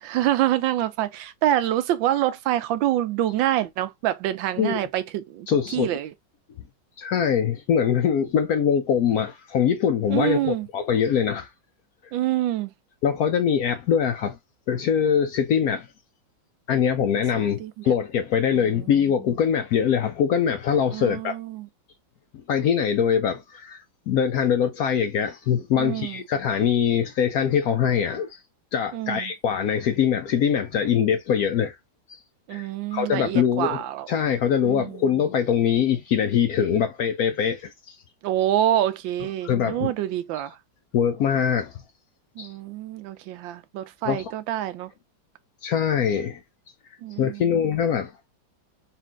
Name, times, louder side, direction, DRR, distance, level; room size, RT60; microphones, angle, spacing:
voice 1, 0.0-5.5 5.7-6.1 10.1-10.7 12.1-12.7 17.6-17.9 18.5-18.9 20.9-21.7 25.8-26.2 28.9-29.3 32.5-34.1 34.6-35.0 38.2-40.6 42.4-44.9 47.0-47.5, right 13 dB, 90° right, 1.4 m, -26 dB
voice 2, 5.5-5.9 7.0-11.5 13.0-14.4 14.7-15.9 16.7-21.3 22.3-28.4 28.7-31.7 32.1-32.2 32.5-38.0 39.4-39.9 40.3-40.4 40.9-41.7 42.4-42.5 44.0-44.3 45.6-46.4 47.2-48.1, left 8 dB, 70° left, 0.9 m, -23 dB
4.2 x 2.6 x 3.6 m
omnidirectional pair, 2.0 m